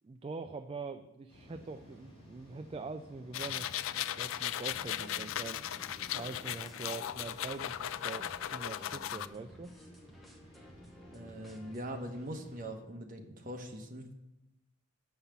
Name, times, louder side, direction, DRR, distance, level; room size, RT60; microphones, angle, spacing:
voice 1, 0.0-5.6 6.1-9.7, right 4 dB, 25° right, 8 dB, 0.3 m, -44 dB
sound 1, 1.3-12.7, equal, 25° left, 3.2 m, -58 dB
sound 2, 3.3-9.3, left 11 dB, 80° left, 0.3 m, -37 dB
sound 3, 4.7-11.8, equal, ahead, 0.9 m, -53 dB
voice 2, 11.1-14.1, right 1 dB, 45° right, 3 dB, 1.1 m, -42 dB
6.8 x 5.6 x 7.2 m, 0.92 s
head